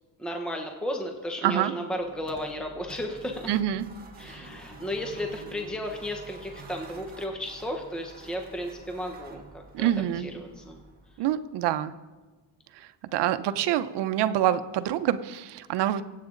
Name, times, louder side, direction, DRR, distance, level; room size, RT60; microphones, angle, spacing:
voice 1, 0.2-3.5 4.2-9.9 10.2-10.8, equal, ahead, 3 dB, 1.0 m, -34 dB
voice 2, 1.4-1.7 3.5-3.9 4.3-4.4 9.7-10.3 11.2-11.9 12.7-16.0, right 11 dB, 65° right, 11 dB, 0.9 m, -26 dB
sound 1, 1.9-11.3, right 3 dB, 20° right, 1.6 m, -48 dB
sound 2, 4.3-6.3, left 2 dB, 70° left, 3.5 m, -49 dB
23.5 x 8.6 x 3.9 m, 1.2 s
cardioid pair, 150°, 44 cm